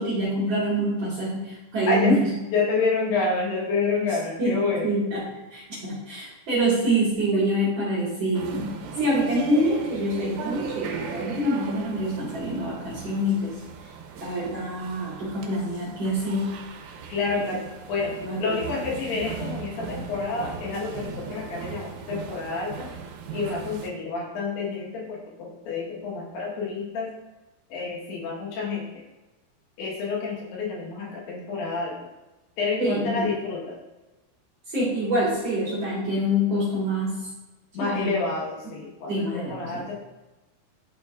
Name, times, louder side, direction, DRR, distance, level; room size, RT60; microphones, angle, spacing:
voice 1, 0.0-2.3 4.4-13.6 14.2-16.6 17.4-17.5 18.2-18.7 32.8-33.4 34.7-37.3 37.8-38.2 39.1-39.9, equal, 55° right, -7 dB, 2.0 m, -26 dB
voice 2, 2.5-4.9 7.3-7.4 17.1-18.1 18.4-22.9 23.3-27.2 27.7-29.0 29.8-32.0 32.6-33.8 37.7-39.9, left 4 dB, 75° left, -3 dB, 3.4 m, -28 dB
sound 1, 8.3-23.9, right 5 dB, 80° right, 2.3 m, -37 dB
11.5 x 4.5 x 2.4 m, 1.1 s
omnidirectional pair, 4.8 m